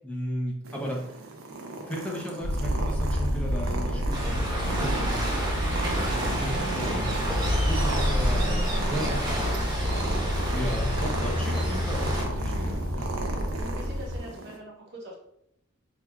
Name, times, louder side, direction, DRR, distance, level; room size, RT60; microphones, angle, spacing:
voice 1, 0.0-1.1 1.8-5.7 6.0-10.0 10.5-13.1, equal, 5° left, -2 dB, 0.5 m, -35 dB
Purr, 0.6-14.6, right 2 dB, 70° right, 0.5 m, -37 dB
sound 1, 2.4-14.2, equal, 75° left, 0.5 m, -28 dB
Waves surf, 4.1-12.2, right 1 dB, 20° right, 0.8 m, -33 dB
voice 2, 12.5-12.9 13.5-15.2, equal, 55° right, -2 dB, 0.9 m, -43 dB
4.4 x 2.3 x 2.2 m, 0.76 s
head